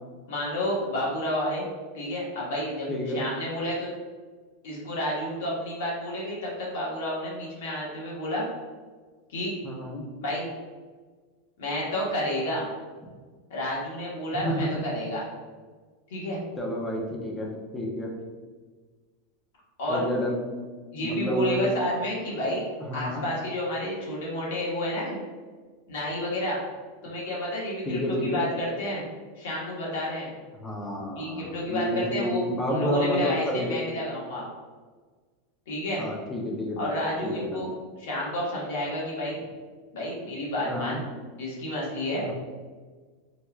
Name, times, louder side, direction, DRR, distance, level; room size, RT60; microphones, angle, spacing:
voice 1, 0.3-1.6 1.9-2.9 3.1-3.9 4.6-8.5 9.3-9.5 10.2-10.5 11.6-12.7 13.5-15.3 16.1-16.4 19.8-20.0 20.9-22.7 22.9-25.2 25.9-26.6 27.0-29.0 29.4-30.3 31.1-34.4 35.7-36.0 36.8-37.7 38.0-39.4 39.9-41.0 41.4-42.3, left 1 dB, 75° left, -5 dB, 1.3 m, -30 dB
voice 2, 2.9-3.2 9.6-10.1 14.4-14.7 16.6-17.5 17.7-18.1 19.9-20.4 21.0-21.7 22.3-22.4 22.9-23.2 27.9-28.4 30.6-33.8 36.0-36.8 37.2-37.7 40.6-41.0 42.2-42.3, equal, 10° left, 0 dB, 0.5 m, -30 dB
4.2 x 2.3 x 2.3 m, 1.4 s
supercardioid pair, 175°, 0 cm